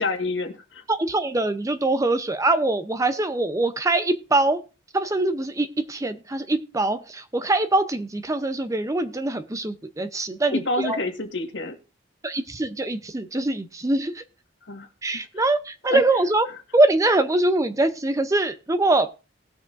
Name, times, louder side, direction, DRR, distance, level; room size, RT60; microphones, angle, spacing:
voice 1, 0.0-0.8 10.5-11.8 14.7-14.9 15.1-15.3 15.9-16.0, left 2 dB, 75° left, 5 dB, 1.6 m, -28 dB
voice 2, 0.9-4.6 4.9-11.0 12.2-14.2 15.0-16.5 16.7-19.2, right 2 dB, 15° right, 11 dB, 0.6 m, -23 dB
19.0 x 6.4 x 2.5 m, 0.32 s
head